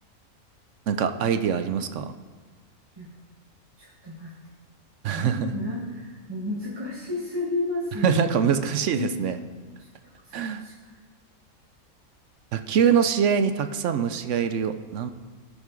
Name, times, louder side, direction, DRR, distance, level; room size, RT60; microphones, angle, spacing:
voice 1, 0.9-2.1 5.0-5.5 8.0-9.4 10.3-10.6 12.5-15.1, right 7 dB, 65° right, 9 dB, 0.8 m, -24 dB
voice 2, 3.8-4.3 5.1-8.3 8.6-9.2 9.8-9.9 10.2-10.9, left 2 dB, 15° right, -6 dB, 1.5 m, -32 dB
18.0 x 6.1 x 3.8 m, 1.4 s
omnidirectional pair, 1.5 m